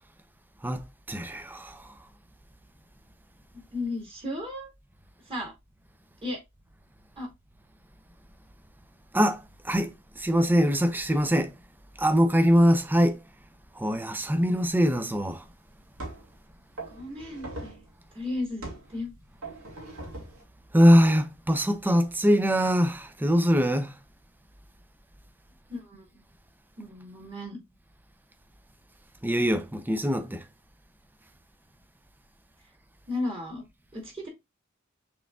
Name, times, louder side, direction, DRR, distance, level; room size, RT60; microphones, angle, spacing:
voice 1, 0.6-1.9 9.1-11.5 12.0-13.2 13.8-15.4 20.7-23.9 29.2-30.4, equal, 10° right, 0.5 m, -23 dB
voice 2, 3.7-4.7 5.3-5.5 6.2-6.4 7.2-7.3 16.9-17.8 18.1-19.1 25.7-26.1 26.8-27.6 33.1-33.6 33.9-34.3, left 2 dB, 25° right, 2.2 m, -34 dB
sound 1, 15.2-15.3 16.0-16.3 16.8-17.9 18.6-18.9 19.4-20.4, right 2 dB, 85° right, 2.0 m, -40 dB
6.2 x 3.5 x 2.3 m
head